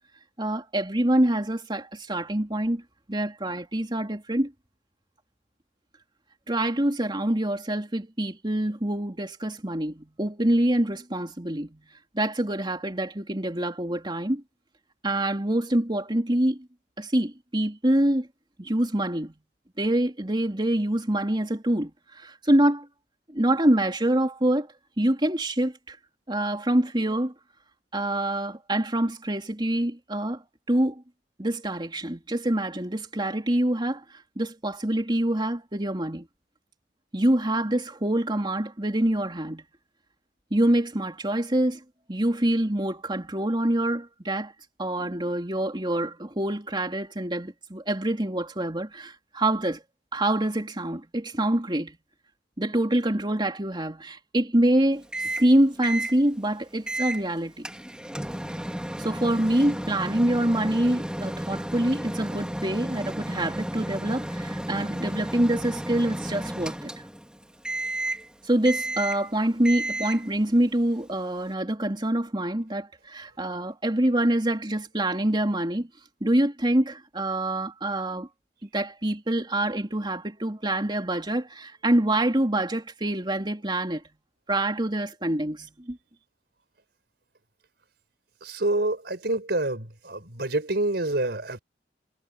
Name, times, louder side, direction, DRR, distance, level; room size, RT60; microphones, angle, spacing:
voice 1, 0.4-2.8 3.1-4.5 6.5-11.8 12.1-14.4 15.0-16.7 17.0-18.3 18.6-19.3 19.8-22.9 23.3-24.7 25.0-26.0 26.3-27.3 27.9-30.4 30.7-31.0 31.4-36.3 37.1-39.6 40.5-41.8 42.1-44.5 44.8-49.8 50.1-52.0 52.6-55.0 55.3-57.7 59.0-66.9 68.4-75.9 76.2-78.3 78.7-84.0 84.5-86.0, right 1 dB, 25° right, 3.3 m, -25 dB
Microwave oven, 55.1-55.5 55.8-56.2 56.9-57.2 57.6-67.3 67.6-68.3 68.6-69.3 69.6-70.3, right 1 dB, 5° right, 3.3 m, -32 dB
voice 2, 88.4-91.6, right 2 dB, 65° right, 4.9 m, -27 dB
head